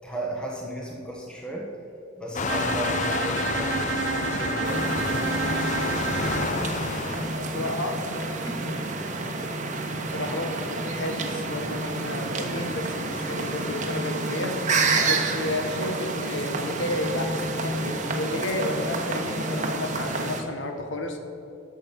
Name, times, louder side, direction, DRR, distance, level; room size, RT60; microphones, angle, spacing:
voice 1, 0.0-1.7 2.2-5.4, right 1 dB, 5° left, -2 dB, 1.2 m, -35 dB
Waves surf, 2.3-7.4, left 4 dB, 40° left, 0.5 m, -29 dB
Bowed string instrument, 2.5-6.7, right 6 dB, 65° right, 0.4 m, -30 dB
sound 1, 4.6-20.4, right 3 dB, 40° right, 1.1 m, -29 dB
voice 2, 7.3-8.0 8.4-8.9 10.0-14.5 15.0-21.2, left 2 dB, 70° left, 5 dB, 1.2 m, -32 dB
11.5 x 7.2 x 5.4 m, 2.8 s
head